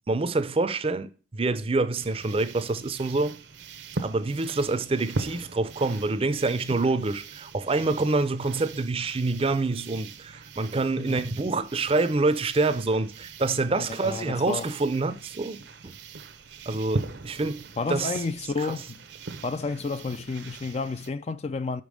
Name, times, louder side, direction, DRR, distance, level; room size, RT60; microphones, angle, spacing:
voice 1, 0.1-3.4 4.0-15.9 16.7-17.6 17.9-18.2 18.6-18.8, right 3 dB, 30° right, 0.5 m, -26 dB
sound 1, 2.0-21.1, right 3 dB, 70° right, 0.7 m, -40 dB
voice 2, 13.8-14.6 17.8-19.0 19.4-21.8, left 4 dB, 35° left, 0.4 m, -31 dB
5.9 x 5.2 x 6.2 m
head